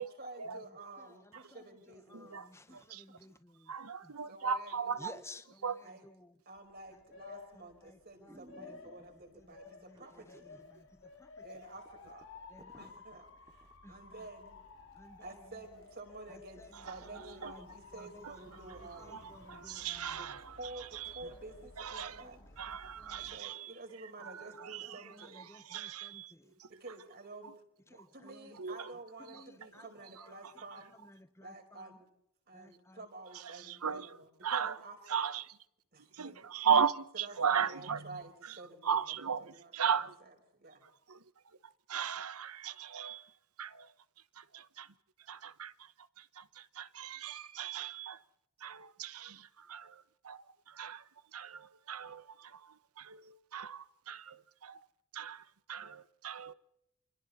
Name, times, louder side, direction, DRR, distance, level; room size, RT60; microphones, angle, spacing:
voice 1, 0.0-2.4 2.7-2.8 4.3-5.2 5.8-6.0 6.4-10.5 11.4-12.3 12.8-14.6 15.2-19.3 20.2-20.3 20.6-22.4 23.1-25.4 26.7-30.9 31.4-32.1 32.5-35.0 35.9-36.4 37.1-39.0 39.5-39.9 40.5-40.8, right 2 dB, 45° right, 4.9 m, -50 dB
voice 2, 1.0-3.7 4.0-4.1 5.0-5.6 6.2-6.3 7.5-8.8 9.3-11.4 12.5-13.2 13.8-13.9 14.9-15.4 16.3-16.7 17.0-17.7 17.9-18.2 18.5-18.6 19.0-20.2 22.2-22.4 22.7-23.4 24.4-24.5 24.8-26.5 27.9-28.6 29.3-29.9 30.2-30.3 31.0-32.0 32.5-33.0 33.6-33.8, left 2 dB, 10° left, 0.9 m, -57 dB
voice 3, 2.1-3.0 3.7-5.1 5.6-5.8 16.7-17.5 18.2-18.3 19.1-21.2 21.8-22.2 22.6-23.8 24.2-26.3 26.6-26.7 27.4-27.5 28.5-29.0 29.3-29.7 30.2-30.5 33.3-34.8 35.1-35.6 36.1-40.2 40.8-43.9 44.3-48.2 48.6-54.9 55.1-56.5, right 7 dB, 85° right, 1.0 m, -38 dB
Motor vehicle (road) / Siren, 6.6-23.4, left 3 dB, 55° left, 2.7 m, -55 dB
sound 1, 7.1-7.4 7.9-8.0 8.3-9.3 9.9-10.6 10.9-11.0 11.5-11.6 11.8-13.7 14.2-14.3, right 1 dB, 20° right, 2.2 m, -59 dB
28.5 x 26.5 x 4.2 m
head